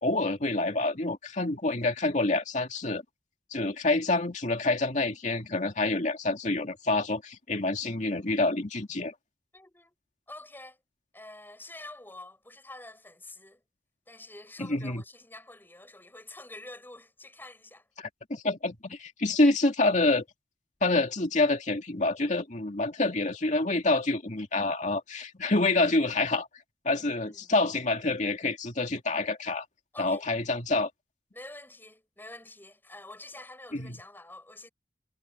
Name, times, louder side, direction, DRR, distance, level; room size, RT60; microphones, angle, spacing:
voice 1, 0.0-3.0 3.5-9.1 14.6-15.0 18.0-20.2 20.8-26.5 26.8-29.6 30.0-30.9 33.7-34.0, left 2 dB, 45° left, 2.4 m, -27 dB
voice 2, 9.5-9.9 10.3-10.8 11.1-13.6 14.1-17.8 27.1-27.5 29.9-30.3 31.3-34.7, left 2 dB, 10° left, 5.9 m, -47 dB
head